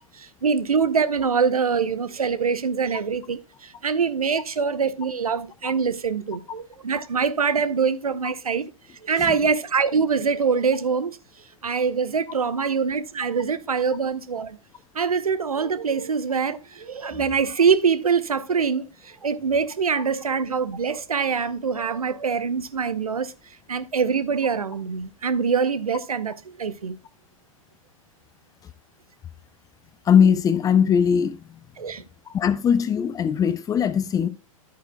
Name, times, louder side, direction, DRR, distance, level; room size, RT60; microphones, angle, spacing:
voice 1, 0.1-8.7 9.0-11.2 11.6-14.6 14.9-23.3 23.7-27.0 31.8-32.0, right 5 dB, 85° right, 0.8 m, -24 dB
voice 2, 30.1-31.4 32.3-34.3, left 7 dB, 20° left, 0.6 m, -20 dB
10.5 x 8.3 x 2.2 m
figure-of-eight pair, 105°, 18 cm